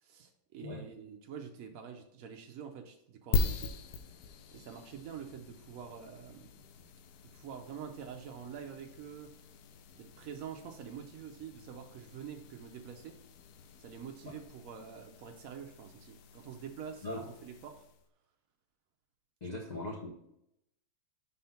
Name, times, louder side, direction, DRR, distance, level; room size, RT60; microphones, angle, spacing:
voice 1, 0.0-3.8 4.5-6.5 7.3-9.3 9.9-13.2 13.8-17.8 19.6-19.8, right 7 dB, 75° right, 4 dB, 0.7 m, -46 dB
sound 1, 3.3-18.1, left 4 dB, 70° left, 0.9 m, -41 dB
voice 2, 19.4-20.1, left 2 dB, 35° left, -2 dB, 0.7 m, -39 dB
5.6 x 3.7 x 5.6 m, 0.79 s
omnidirectional pair, 2.2 m